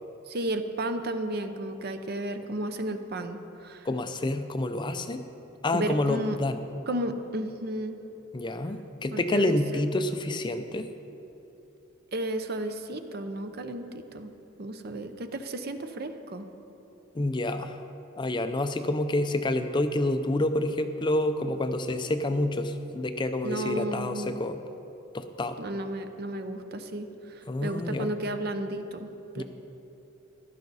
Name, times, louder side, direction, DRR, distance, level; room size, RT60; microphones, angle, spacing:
voice 1, 0.3-3.9 5.7-6.4 6.9-8.0 9.1-9.8 12.1-14.3 14.6-16.5 23.4-24.4 25.6-29.4, right 1 dB, 50° right, 8 dB, 0.7 m, -33 dB
voice 2, 3.8-5.2 5.6-6.6 8.3-10.9 17.1-17.8 18.2-24.6 25.1-25.6 27.5-28.1 29.4-29.5, left 1 dB, 25° left, 9 dB, 0.5 m, -28 dB
15.0 x 12.0 x 4.1 m, 2.9 s
head